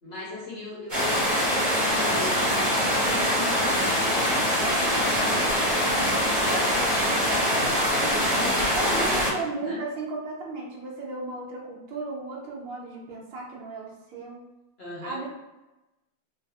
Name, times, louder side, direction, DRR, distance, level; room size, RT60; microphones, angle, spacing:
voice 1, 0.0-4.6 5.0-7.8 8.3-9.3 9.6-9.8 14.8-15.3, left 2 dB, 40° left, -8 dB, 1.2 m, -39 dB
sound 1, 0.9-9.3, equal, 30° right, 1.0 m, -23 dB
voice 2, 8.7-14.4 15.0-15.3, right 3 dB, 80° right, -4 dB, 1.4 m, -35 dB
4.0 x 2.3 x 2.4 m, 1.0 s
omnidirectional pair, 2.1 m